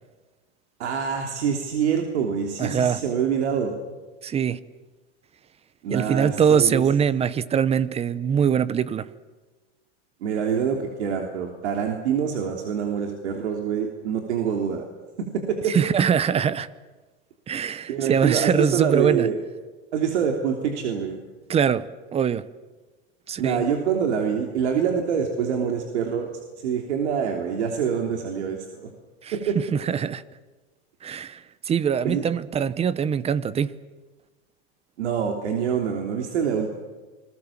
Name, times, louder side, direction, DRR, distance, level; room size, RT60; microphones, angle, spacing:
voice 1, 0.8-3.7 5.8-6.8 10.2-14.8 15.2-15.7 17.9-19.4 19.9-21.2 23.4-28.9 29.3-29.6 32.0-32.2 35.0-36.7, right 7 dB, 85° right, 3.2 m, -25 dB
voice 2, 2.6-3.0 4.2-4.6 5.9-9.1 15.7-16.7 17.5-19.3 21.5-22.4 23.3-23.6 29.2-30.2 31.0-31.4 31.7-33.7, right 7 dB, 20° right, 0.7 m, -23 dB
28.0 x 21.0 x 7.3 m
supercardioid pair, 135°, 33 cm